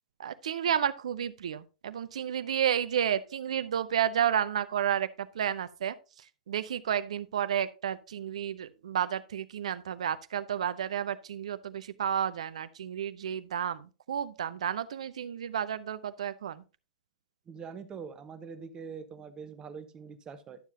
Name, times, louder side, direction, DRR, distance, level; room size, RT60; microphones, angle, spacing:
voice 1, 0.2-6.0 6.5-16.6, right 9 dB, 60° right, 0.6 m, -31 dB
voice 2, 17.5-20.6, right 6 dB, 20° right, 1.0 m, -43 dB
11.5 x 7.2 x 2.7 m
figure-of-eight pair, 105°, 4 cm